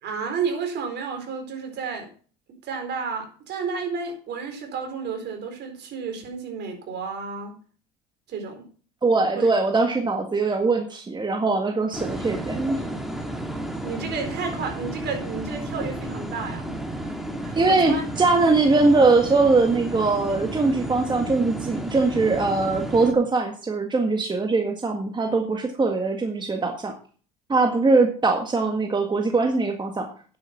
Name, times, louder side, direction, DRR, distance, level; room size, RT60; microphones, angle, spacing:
voice 1, 0.0-2.1 2.6-7.5 8.3-8.7 9.3-9.5 13.8-16.6 17.0-17.1 17.4-18.0, right 5 dB, 55° right, 4 dB, 4.3 m, -31 dB
voice 2, 9.0-12.8 17.6-26.9 27.5-30.1, right 3 dB, 20° right, 4 dB, 1.8 m, -21 dB
sound 1, 11.9-23.1, right 1 dB, ahead, 2.4 m, -32 dB
9.6 x 8.1 x 6.0 m, 0.42 s
supercardioid pair, 85°, 21 cm